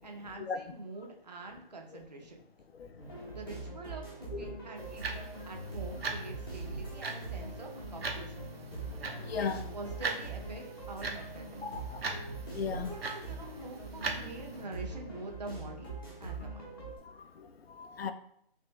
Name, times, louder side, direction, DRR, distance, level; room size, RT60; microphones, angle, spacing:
voice 1, 0.0-2.4 3.3-8.5 9.3-11.6 12.7-16.6, right 3 dB, 45° right, 0.7 m, -45 dB
voice 2, 2.8-3.2 4.3-4.6 9.2-9.6 11.6-12.1 12.5-12.9 17.0-18.1, left 6 dB, 90° left, 0.5 m, -37 dB
sound 1, 3.0-17.0, right 3 dB, 25° left, 0.9 m, -43 dB
sound 2, 4.8-14.6, right 3 dB, 80° right, 0.9 m, -41 dB
3.4 x 3.2 x 3.1 m
hypercardioid pair, 180°, 30 cm